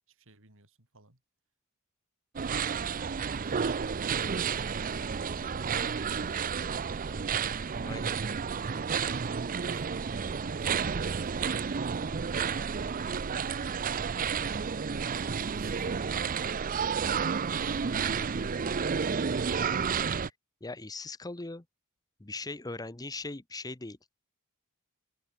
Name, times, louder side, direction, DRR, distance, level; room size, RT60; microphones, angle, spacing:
voice 1, 0.1-1.2 3.3-4.3 4.7-6.1 8.2-12.0 12.4-13.5 13.9-14.3 15.2-16.6 17.6-18.8, right 2 dB, 60° right, 5.5 m, -56 dB
sound 1, 2.4-20.3, right 6 dB, 40° right, 0.5 m, -31 dB
voice 2, 7.8-8.1 20.6-21.6 22.2-24.0, left 3 dB, 15° left, 1.0 m, -39 dB
head